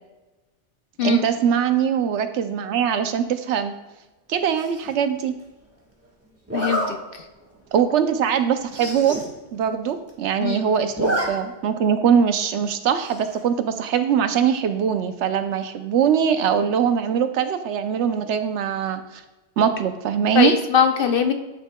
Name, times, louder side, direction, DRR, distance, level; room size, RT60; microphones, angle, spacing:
voice 1, 1.0-3.7 4.3-5.4 7.7-9.2 9.5-19.2 19.6-20.5, right 8 dB, 75° right, 9 dB, 0.9 m, -22 dB
Zipper (clothing), 4.5-4.9 6.5-6.9 7.4-7.6 7.9-8.0 8.3-8.4 8.6-9.2 9.6-9.7 9.9-10.4 10.7-11.3 11.6-11.7 13.0-13.4, equal, 15° right, 1.2 m, -28 dB
voice 2, 6.5-7.2 10.4-10.7 20.3-21.3, left 6 dB, 55° left, 6 dB, 0.8 m, -21 dB
11.5 x 6.3 x 2.2 m, 1.1 s
omnidirectional pair, 1.2 m